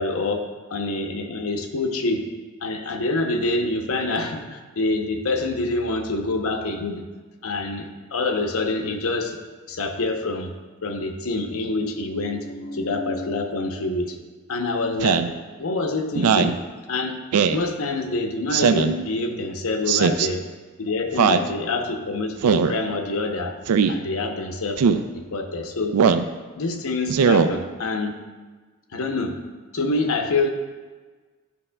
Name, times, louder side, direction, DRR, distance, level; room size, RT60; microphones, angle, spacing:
voice 1, 0.0-2.2 2.6-7.0 7.4-9.4 9.7-10.5 10.8-14.2 14.5-15.3 15.6-16.6 16.9-17.2 17.5-20.4 20.8-23.5 23.9-24.8 25.1-26.0 26.6-28.2 28.9-29.4 29.7-30.5, left 2 dB, 70° left, 5 dB, 0.7 m, -26 dB
Speech synthesizer, 15.0-15.3 16.1-16.6 17.3-17.6 18.5-19.0 19.9-20.3 21.2-21.5 22.4-22.7 23.7-23.9 24.8-25.0 25.9-26.3 27.1-27.5, right 6 dB, 85° right, 0.4 m, -19 dB
11.0 x 5.4 x 2.2 m, 1.4 s
head